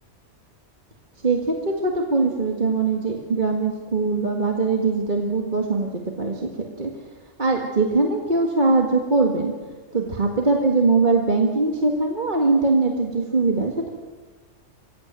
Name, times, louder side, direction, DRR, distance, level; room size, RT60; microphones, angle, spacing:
voice 1, 1.2-6.9 7.4-9.5 9.9-13.9, right 3 dB, 40° right, 2 dB, 2.1 m, -21 dB
23.5 x 16.5 x 9.2 m, 1.3 s
omnidirectional pair, 1.3 m